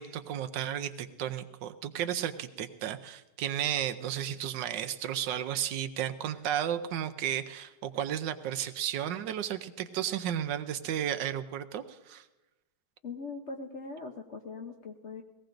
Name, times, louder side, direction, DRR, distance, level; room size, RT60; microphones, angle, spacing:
voice 1, 0.0-12.3, right 10 dB, 75° right, 9 dB, 1.3 m, -33 dB
voice 2, 13.0-15.2, left 4 dB, 50° left, 3 dB, 0.8 m, -41 dB
22.5 x 17.5 x 2.6 m, 1.1 s
omnidirectional pair, 2.0 m